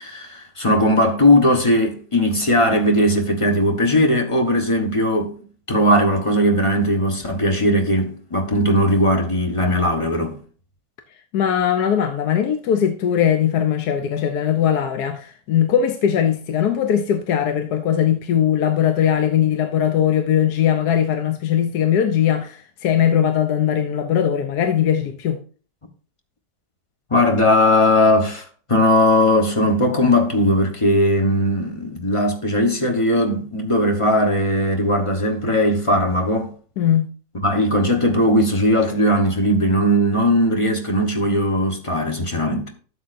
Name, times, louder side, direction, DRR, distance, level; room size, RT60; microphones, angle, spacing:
voice 1, 0.0-5.3 5.7-10.4 27.1-36.5 37.4-42.7, left 1 dB, 20° left, 1.1 m, -18 dB
voice 2, 11.3-25.4 36.8-37.1, left 9 dB, 75° left, 1.2 m, -20 dB
12.0 x 8.0 x 2.6 m
omnidirectional pair, 1.8 m